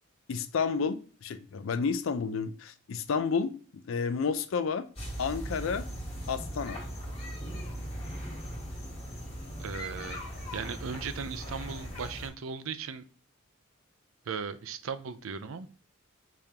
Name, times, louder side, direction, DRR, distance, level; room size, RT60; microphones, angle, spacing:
voice 1, 0.3-4.9 5.2-5.9 6.3-6.8, left 5 dB, 70° left, 0.4 m, -31 dB
sound 1, 5.0-12.3, equal, 30° left, 1.5 m, -39 dB
voice 2, 9.6-10.2 10.5-13.1 14.3-15.7, right 5 dB, 80° right, 0.5 m, -37 dB
5.0 x 3.6 x 2.8 m
head